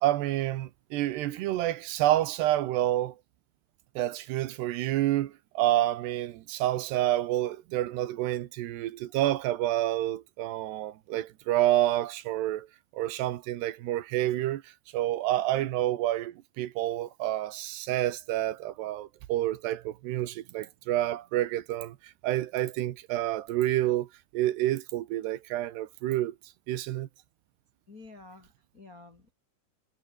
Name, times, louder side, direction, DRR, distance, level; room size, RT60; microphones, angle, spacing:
voice 1, 0.0-3.2 4.0-12.7 12.9-26.4 26.7-27.1, right 14 dB, 75° right, 3.1 m, -29 dB
voice 2, 27.9-29.3, left 3 dB, 40° left, 1.3 m, -51 dB
omnidirectional pair, 5.0 m